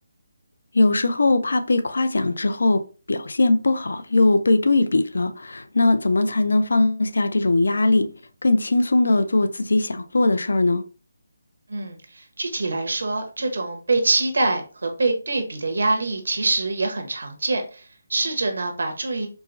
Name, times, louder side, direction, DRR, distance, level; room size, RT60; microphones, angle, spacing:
voice 1, 0.7-2.8 3.1-8.1 8.4-10.8, left 2 dB, 85° left, 0.4 m, -20 dB
voice 2, 11.7-19.3, right 3 dB, 80° right, 1.0 m, -25 dB
4.6 x 2.0 x 2.5 m
hypercardioid pair, 175°, 0 cm